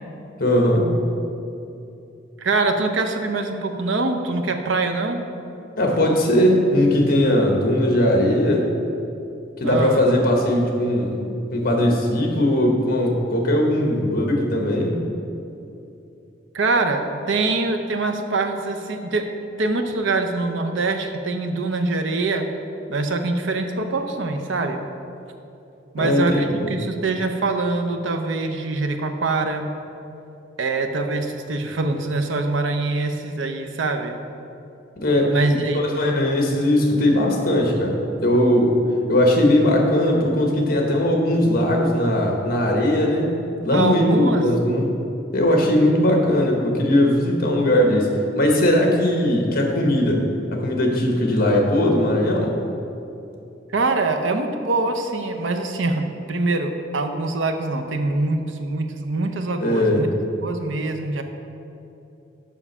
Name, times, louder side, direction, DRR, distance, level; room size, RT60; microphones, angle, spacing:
voice 1, 0.4-0.9 5.8-8.7 9.6-11.2 11.5-14.9 26.0-26.7 35.0-35.3 35.7-38.8 39.1-43.3 43.6-44.9 45.3-48.1 48.3-50.2 50.5-52.5 59.6-60.0, left 1 dB, 50° left, 1 dB, 1.2 m, -19 dB
voice 2, 2.4-5.2 9.6-10.0 16.5-19.3 19.6-22.5 22.9-24.8 25.9-29.7 30.6-34.2 35.2-35.8 36.1-36.2 43.7-44.5 53.7-60.1 60.4-61.2, right 3 dB, 70° right, 6 dB, 0.7 m, -24 dB
7.2 x 5.9 x 5.5 m, 2.8 s
head